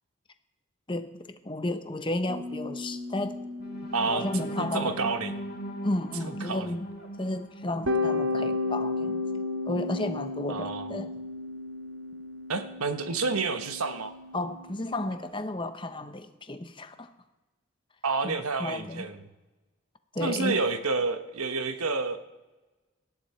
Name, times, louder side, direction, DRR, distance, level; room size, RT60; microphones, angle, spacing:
voice 1, 0.9-3.4 4.0-5.1 5.8-6.9 7.2-9.2 9.7-11.1 14.3-17.1 18.2-19.1 20.1-20.6, left 1 dB, 20° left, 9 dB, 0.9 m, -33 dB
sound 1, 2.3-6.7 7.0-7.1 7.9-15.2, left 3 dB, 60° right, 1.5 m, -34 dB
sound 2, 3.6-9.5 10.0-10.2 10.5-10.8, right 1 dB, 45° left, 1.6 m, -40 dB
voice 2, 3.9-4.3 4.6-5.4 6.2-6.7 10.5-10.9 12.5-14.1 18.0-19.2 20.2-22.2, right 4 dB, 90° right, 8 dB, 1.3 m, -29 dB
18.5 x 13.0 x 4.5 m, 1.1 s
head